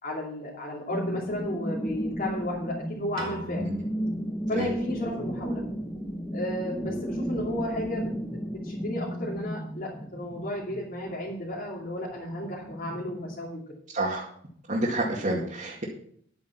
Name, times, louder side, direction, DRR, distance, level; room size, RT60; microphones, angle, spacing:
voice 1, 0.0-3.7 4.5-5.6 6.3-8.1 8.6-13.6, left 1 dB, 45° left, -5 dB, 2.8 m, -33 dB
sound 1, 0.9-13.4, equal, 5° left, 1.3 m, -34 dB
Piano, 3.2-5.4, right 2 dB, 85° right, 3.7 m, -44 dB
voice 2, 13.9-14.3 14.7-15.8, right 1 dB, 40° right, -4 dB, 2.3 m, -29 dB
10.5 x 9.3 x 6.0 m, 0.63 s
head